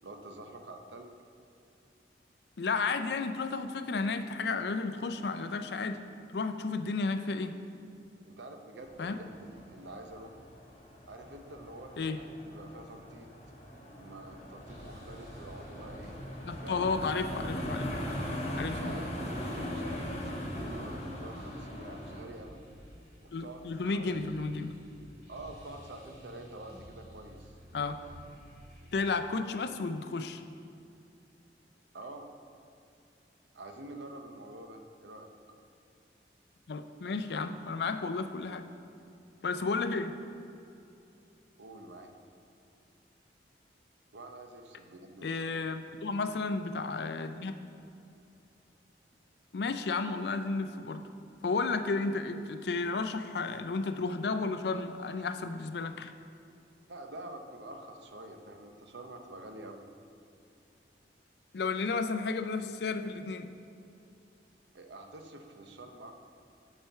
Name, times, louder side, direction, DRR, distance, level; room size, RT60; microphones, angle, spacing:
voice 1, 0.0-1.1 6.7-6.9 8.2-10.5 11.1-13.3 13.9-16.2 16.6-17.2 18.7-22.6 23.2-24.2 25.3-27.6 31.9-32.3 33.5-35.3 41.6-42.1 44.1-45.5 56.9-59.8 64.7-66.1, right 1 dB, 80° right, 5 dB, 0.8 m, -47 dB
voice 2, 2.6-6.0 6.3-7.5 9.0-9.2 12.0-12.2 16.4-17.9 18.5-18.8 23.3-24.7 27.7-28.0 28.9-30.4 36.7-38.7 39.4-40.1 45.2-47.5 49.5-51.0 51.4-56.1 61.5-63.5, left 4 dB, 65° left, 8 dB, 0.4 m, -32 dB
sound 1, 8.8-22.2, equal, 35° left, 1.0 m, -40 dB
sound 2, 14.6-29.0, equal, 40° right, 1.9 m, -54 dB
8.9 x 4.4 x 5.7 m, 2.6 s
head